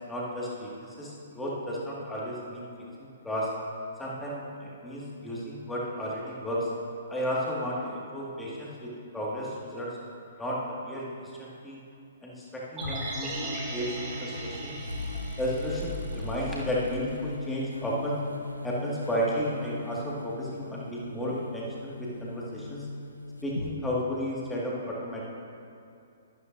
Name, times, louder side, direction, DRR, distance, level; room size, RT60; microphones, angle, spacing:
voice 1, 0.1-2.7 3.0-3.5 4.0-6.7 7.1-10.0 10.4-11.8 12.2-13.9 14.2-14.8 15.4-18.2 18.6-22.9 23.4-25.2, equal, 5° left, -6 dB, 2.0 m, -33 dB
sound 1, 12.8-23.7, left 2 dB, 85° left, 0.7 m, -38 dB
sound 2, 12.8-17.0 17.3-17.4, right 2 dB, 15° right, 1.6 m, -39 dB
12.5 x 12.0 x 2.7 m, 2.6 s
figure-of-eight pair, 120°, 0 cm